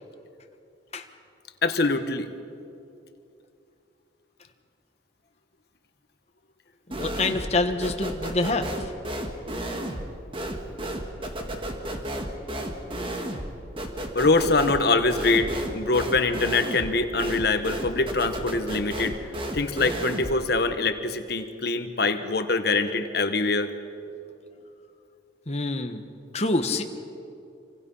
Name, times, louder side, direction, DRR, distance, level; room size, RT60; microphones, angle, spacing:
voice 1, 1.6-2.3 14.1-19.2 19.5-23.7, left 3 dB, 55° left, 8 dB, 1.4 m, -24 dB
sound 1, 6.9-7.6 7.8-20.4, right 1 dB, 25° right, 1.8 m, -33 dB
voice 2, 7.0-8.7 25.5-26.0 26.3-26.8, left 2 dB, 35° left, 5 dB, 1.4 m, -26 dB
27.0 x 25.0 x 5.6 m, 2.6 s
head